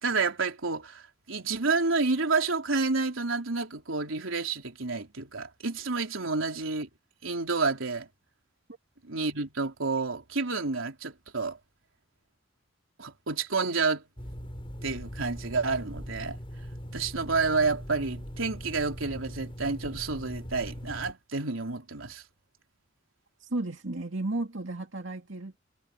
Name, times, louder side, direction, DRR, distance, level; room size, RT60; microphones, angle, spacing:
voice 1, 0.0-1.0 1.3-6.9 7.2-8.1 9.0-11.6 13.0-14.0 14.4-14.5 14.8-16.4 16.9-22.2, right 4 dB, 90° right, 3.5 m, -29 dB
sound 1, 14.2-21.1, equal, 30° left, 4.9 m, -41 dB
voice 2, 23.4-25.6, right 2 dB, 65° right, 2.5 m, -34 dB
head